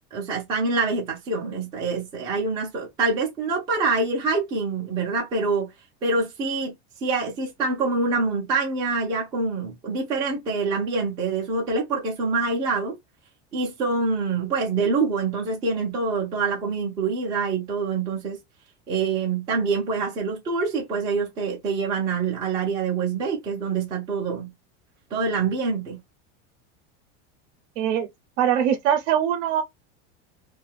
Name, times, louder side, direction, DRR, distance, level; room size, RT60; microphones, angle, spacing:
voice 1, 0.1-5.7 6.0-6.7 7.0-12.9 13.5-18.4 18.9-24.5 25.1-26.0, right 4 dB, 10° right, 0.3 m, -25 dB
voice 2, 27.8-28.1 28.4-29.6, right 9 dB, 90° right, 0.7 m, -22 dB
2.6 x 2.3 x 3.3 m
supercardioid pair, 180°, 35 cm